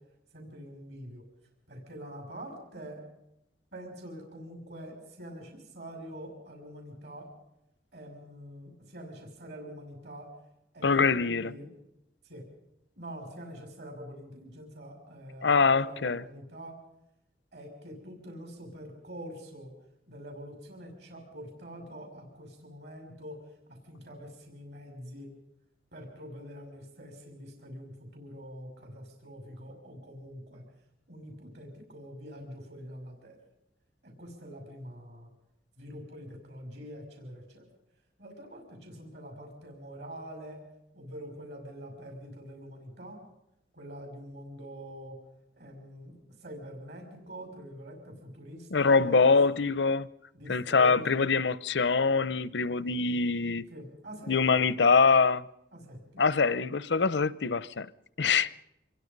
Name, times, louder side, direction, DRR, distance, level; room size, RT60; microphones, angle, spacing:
voice 1, 0.3-1.2 1.7-3.0 3.7-7.3 7.9-10.3 10.7-11.7 12.2-12.5 13.0-16.8 17.5-19.7 20.1-23.4 23.7-25.3 25.9-30.6 31.1-33.4 34.0-35.3 35.8-37.7 38.2-40.6 40.9-43.2 43.7-45.2 45.6-46.1 46.4-49.2 50.3-51.2 53.7-54.3 55.7-56.3, equal, 70° right, 6.1 m, -45 dB
voice 2, 10.8-11.5 15.4-16.2 48.7-50.1 50.5-53.6 54.3-55.4 56.2-57.9 58.2-58.5, left 4 dB, 85° left, 0.8 m, -24 dB
25.5 x 22.0 x 5.4 m
head